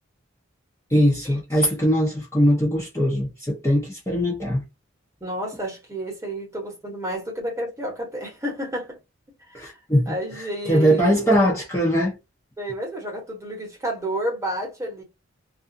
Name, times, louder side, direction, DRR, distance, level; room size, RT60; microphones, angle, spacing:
voice 1, 0.9-4.7 9.5-12.2, equal, 15° left, 0.6 m, -21 dB
voice 2, 5.2-9.0 9.5-9.7 10.1-11.1 12.6-15.0, right 1 dB, 15° right, 0.9 m, -30 dB
2.4 x 2.3 x 2.6 m
head